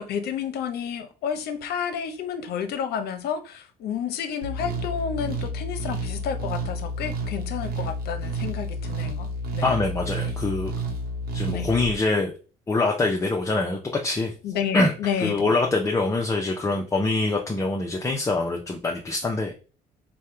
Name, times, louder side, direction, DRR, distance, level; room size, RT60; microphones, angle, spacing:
voice 1, 0.0-9.7 11.5-11.7 14.4-15.5, left 7 dB, 70° left, 0.7 m, -30 dB
sound 1, 4.4-11.9, right 1 dB, 65° right, 0.9 m, -30 dB
voice 2, 9.6-10.7 11.3-12.3 12.7-14.3 14.7-14.9 15.2-19.5, left 2 dB, 15° left, 0.6 m, -24 dB
3.5 x 2.2 x 4.3 m
cardioid pair, 110°, 17 cm